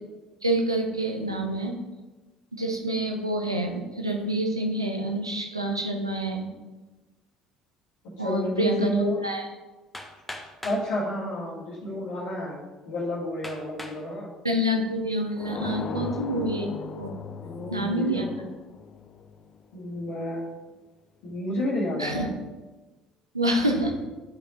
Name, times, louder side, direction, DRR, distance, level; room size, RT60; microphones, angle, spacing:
voice 1, 0.4-1.8 2.5-6.5 8.2-8.9 9.2-9.5 14.4-17.2 17.7-18.3 22.0-22.3 23.3-23.9, right 1 dB, 90° right, 2 dB, 0.7 m, -27 dB
voice 2, 8.2-9.2 10.6-12.6 12.9-14.3 15.8-16.1 17.4-18.5 19.7-20.5 21.2-22.3, left 1 dB, 65° left, -7 dB, 1.6 m, -30 dB
Hammer, 9.9-10.9 11.8-11.9 12.5-12.6 13.4-14.0 14.6-15.1, left 1 dB, 5° left, 1.0 m, -40 dB
sound 1, 15.4-20.1, left 6 dB, 40° left, 0.4 m, -38 dB
10.0 x 5.2 x 2.9 m, 1.2 s
figure-of-eight pair, 55°, 2 cm